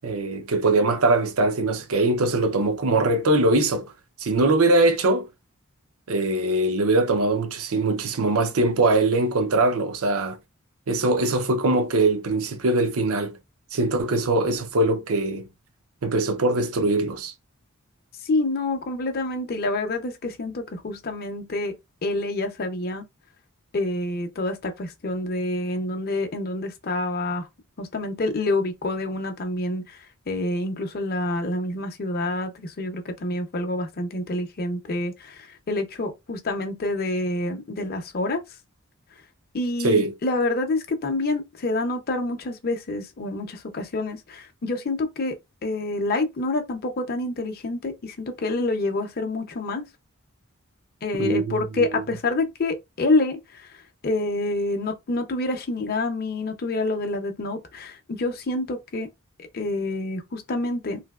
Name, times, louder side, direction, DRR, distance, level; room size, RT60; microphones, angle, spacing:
voice 1, 0.0-3.9 4.2-5.3 6.1-10.4 10.9-13.4 13.7-15.5 16.0-17.3 39.8-40.1 51.1-52.0, right 2 dB, 75° right, 0.6 m, -22 dB
voice 2, 18.2-21.8 22.0-23.0 23.7-27.5 27.8-30.0 30.3-38.4 39.5-45.4 45.6-49.8 51.0-53.7 54.0-59.1 59.5-61.0, left 2 dB, 45° left, 0.6 m, -27 dB
3.2 x 2.7 x 2.3 m
head